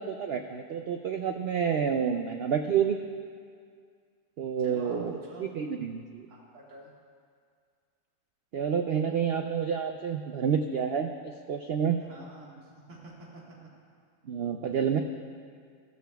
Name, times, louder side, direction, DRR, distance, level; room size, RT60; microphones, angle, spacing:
voice 1, 0.0-3.0 4.4-6.3 8.5-12.0 14.3-15.0, right 7 dB, 85° right, 5 dB, 0.5 m, -29 dB
voice 2, 4.6-5.4 6.3-6.9 12.0-13.4, right 2 dB, 50° right, -4 dB, 2.0 m, -48 dB
15.5 x 13.5 x 2.3 m, 2.1 s
omnidirectional pair, 1.6 m